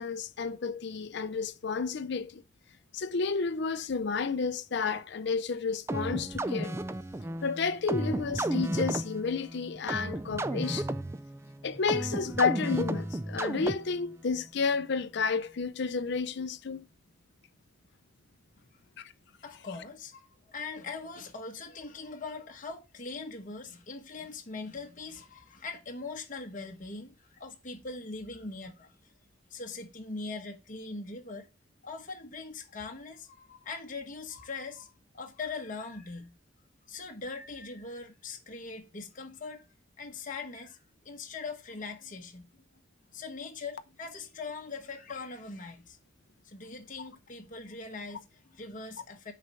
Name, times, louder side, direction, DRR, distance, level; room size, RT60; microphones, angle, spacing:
voice 1, 0.0-2.4 2.9-6.7 7.4-10.9 11.6-16.9 19.0-19.1, left 5 dB, 60° left, 0.5 m, -31 dB
sound 1, 5.9-14.1, right 1 dB, 15° right, 0.3 m, -33 dB
voice 2, 19.4-28.9 29.5-31.5 31.8-36.3 36.9-39.7 40.0-40.8 41.0-42.4 43.1-46.0 46.4-49.3, left 4 dB, 40° left, 1.1 m, -41 dB
6.5 x 4.3 x 5.5 m
head